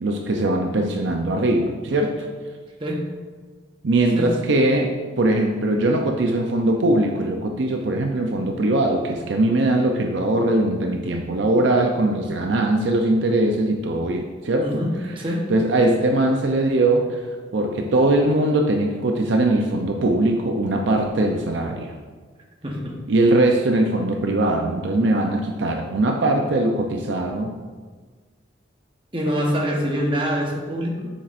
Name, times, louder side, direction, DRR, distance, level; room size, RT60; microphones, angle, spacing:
voice 1, 0.0-2.3 3.8-14.8 15.5-17.2 17.5-22.0 23.1-27.5, right 1 dB, 65° right, 2 dB, 0.5 m, -21 dB
voice 2, 2.8-3.2 4.1-4.4 14.6-15.5 22.6-23.0 29.1-31.1, equal, 25° right, 0 dB, 1.0 m, -25 dB
7.3 x 7.1 x 2.5 m, 1.5 s
head